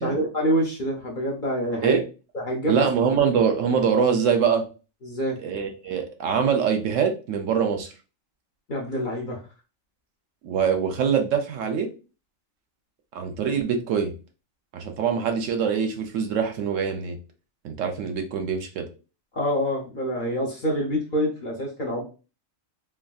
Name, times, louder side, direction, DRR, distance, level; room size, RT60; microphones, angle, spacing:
voice 1, 0.0-2.0 2.3-2.7 5.0-5.4 8.7-9.4 19.3-22.0, equal, 50° left, -2 dB, 0.7 m, -26 dB
voice 2, 2.7-4.7 5.4-7.9 10.4-11.9 13.1-14.1 14.7-17.2 17.6-18.9, right 7 dB, 70° right, 5 dB, 0.9 m, -24 dB
3.4 x 2.5 x 2.3 m, 0.33 s
omnidirectional pair, 1.4 m